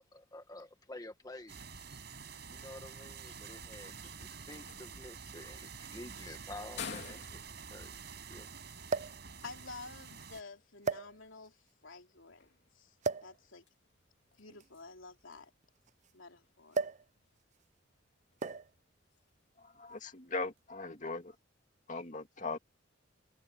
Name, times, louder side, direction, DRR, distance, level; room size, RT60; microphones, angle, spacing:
voice 1, 0.0-1.8 2.5-7.4 7.7-8.0 8.3-8.5, left 1 dB, 20° left, 1.6 m, -50 dB
sound 1, 1.3-20.8, left 6 dB, 60° left, 3.1 m, -55 dB
sound 2, 1.5-10.4, right 5 dB, 55° right, 6.1 m, -48 dB
sound 3, 5.1-5.2 6.3-6.4 6.7-6.8 8.9-9.3 10.1-10.3 10.8-11.5 13.0-13.4 14.5-16.1 16.7-17.1 17.4-17.6 18.4-18.8 19.7-20.0, right 4 dB, 35° right, 0.5 m, -36 dB
voice 2, 9.4-11.6 11.8-12.5 12.7-12.9 13.2-13.6 14.4-15.5 16.1-16.8, left 3 dB, 85° left, 3.0 m, -50 dB
voice 3, 19.6-21.4 21.9-22.6, left 3 dB, 40° left, 2.5 m, -39 dB
head